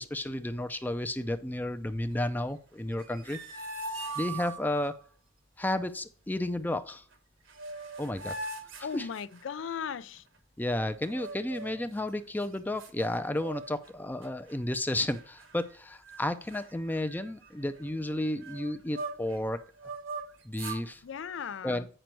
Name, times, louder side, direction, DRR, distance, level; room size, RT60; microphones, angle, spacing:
voice 1, 0.0-4.9 5.6-7.0 8.0-8.4 8.9-9.1 10.6-19.6 20.4-21.0 21.6-21.8, left 1 dB, 10° left, 0.4 m, -32 dB
sound 1, 2.9-5.0 7.1-7.2 7.5-9.7 11.1-11.9 12.4-12.5 12.8-13.9 14.2-14.5 15.1-15.8 16.1-16.2 16.5-19.4 19.8-20.9, right 3 dB, 75° right, 1.2 m, -41 dB
voice 2, 8.8-10.2 21.0-21.9, left 7 dB, 65° left, 0.4 m, -37 dB
9.0 x 5.2 x 4.6 m
head